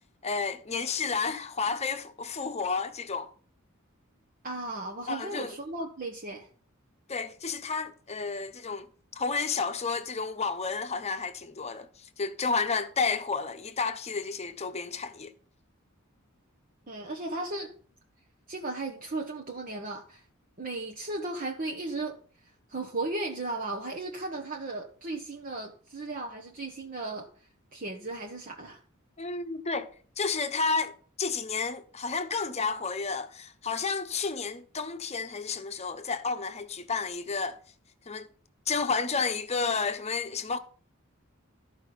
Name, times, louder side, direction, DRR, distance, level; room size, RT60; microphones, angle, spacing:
voice 1, 0.2-3.3 5.1-5.6 7.1-8.9 9.1-15.3 29.2-37.6 38.1-38.3 38.7-40.6, left 4 dB, 30° left, 0.9 m, -31 dB
voice 2, 4.4-6.5 16.9-17.7 18.5-20.2 20.6-22.2 22.7-27.3 27.7-28.8, right 2 dB, 40° right, 1.1 m, -35 dB
13.5 x 5.0 x 5.9 m
head